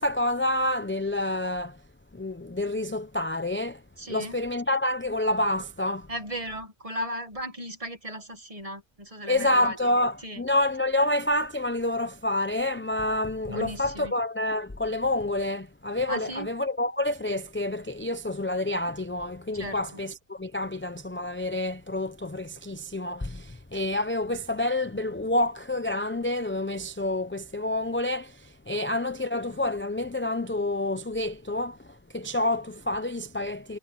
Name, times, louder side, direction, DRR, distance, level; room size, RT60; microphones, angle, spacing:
voice 1, 0.0-1.8 2.1-3.8 4.1-6.1 9.3-33.8, left 1 dB, 15° left, 0.5 m, -28 dB
voice 2, 4.0-4.4 6.1-9.8 10.2-10.4 13.5-14.1 16.1-16.5 19.5-19.8, equal, 30° right, 1.9 m, -36 dB
omnidirectional pair, 1.1 m